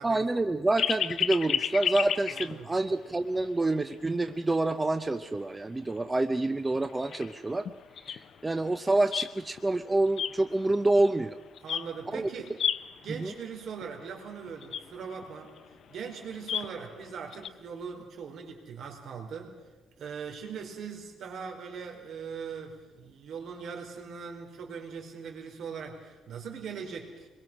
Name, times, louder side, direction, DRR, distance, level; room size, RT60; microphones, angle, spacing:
voice 1, 0.0-7.7 8.1-11.4 12.1-12.3 13.1-13.3, right 2 dB, 15° right, 10 dB, 0.6 m, -27 dB
sound 1, 0.8-3.0 3.4-3.5 3.9-4.0 5.3-5.4 5.9-6.0 6.4-6.5 6.7-9.7 10.1-11.3 11.6-12.1 12.4-13.3 13.8-13.9 14.1-14.2 14.5-17.5, left 8 dB, 55° left, 0.6 m, -32 dB
voice 2, 2.3-2.7 11.6-12.5 13.0-15.5 15.9-19.5 20.0-27.3, right 6 dB, 60° right, 2 dB, 4.4 m, -40 dB
25.5 x 22.0 x 6.2 m, 1.2 s
cardioid pair, 145°, 0 cm